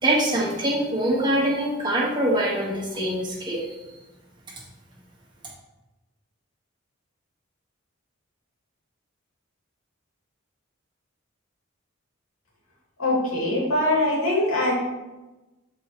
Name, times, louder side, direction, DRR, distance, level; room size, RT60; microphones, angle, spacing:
voice 1, 0.0-3.7, right 1 dB, 20° right, -4 dB, 1.8 m, -24 dB
voice 2, 13.0-14.7, left 1 dB, 80° left, -4 dB, 2.9 m, -22 dB
12.0 x 4.8 x 3.2 m, 1.1 s
head